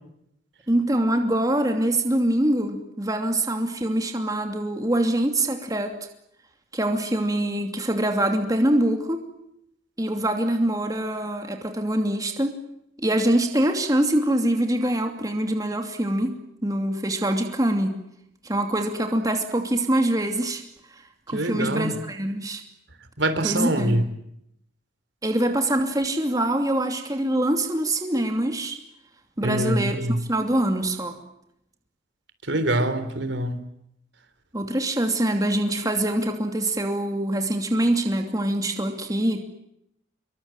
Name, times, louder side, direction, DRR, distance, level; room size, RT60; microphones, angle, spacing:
voice 1, 0.7-5.9 6.7-9.2 10.0-12.6 13.0-17.9 18.4-20.6 21.3-22.6 23.4-24.0 25.2-28.8 29.4-30.0 30.3-31.2 34.5-39.4, right 1 dB, 20° right, 4 dB, 2.8 m, -24 dB
voice 2, 21.3-22.0 23.2-24.1 29.4-30.2 32.5-33.6, right 1 dB, 70° right, 10 dB, 3.7 m, -24 dB
26.5 x 23.0 x 9.2 m, 0.78 s
head